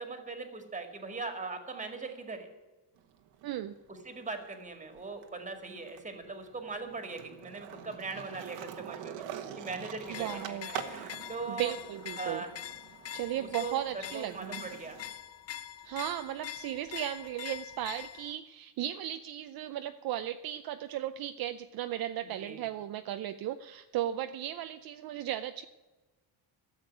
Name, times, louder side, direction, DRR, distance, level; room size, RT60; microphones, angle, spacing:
voice 1, 0.0-2.5 3.9-9.2 9.6-11.7 12.2-12.5 13.4-15.0 22.4-22.6, right 4 dB, 15° right, 6 dB, 2.0 m, -40 dB
Skateboard, 3.0-4.6 4.9-15.1, right 9 dB, 85° right, 1.5 m, -45 dB
voice 2, 3.4-3.7 10.1-10.7 11.5-12.4 13.1-14.6 15.8-25.7, right 12 dB, 55° right, 8 dB, 0.6 m, -36 dB
sound 1, 10.0-18.3, left 11 dB, 35° left, 0.5 m, -44 dB
13.5 x 7.4 x 9.2 m, 1.2 s
cardioid pair, 145°, 43 cm